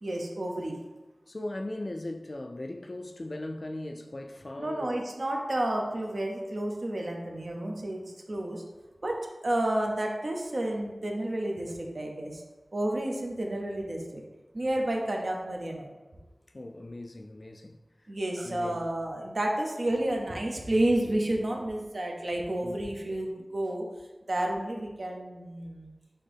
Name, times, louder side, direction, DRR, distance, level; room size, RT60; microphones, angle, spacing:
voice 1, 0.0-0.8 4.6-8.6 9.0-12.4 12.7-14.2 14.5-15.9 18.1-23.8 24.3-25.9, right 1 dB, 65° right, 0.7 m, -31 dB
voice 2, 1.3-5.0 16.5-17.8 18.4-18.8 22.6-22.8, left 1 dB, 50° left, 0.3 m, -38 dB
4.3 x 3.5 x 3.4 m
wide cardioid pair, 60°, 0 cm